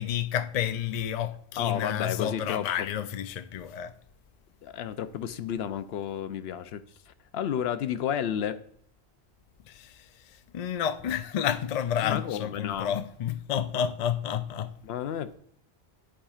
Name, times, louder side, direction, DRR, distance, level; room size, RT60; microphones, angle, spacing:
voice 1, 0.0-3.9 9.7-9.9 10.5-14.7, left 9 dB, 55° left, 0.4 m, -30 dB
voice 2, 1.6-2.9 4.6-8.6 12.0-12.9 14.8-15.4, left 9 dB, 80° left, 0.8 m, -32 dB
11.5 x 5.0 x 2.4 m
omnidirectional pair, 1.0 m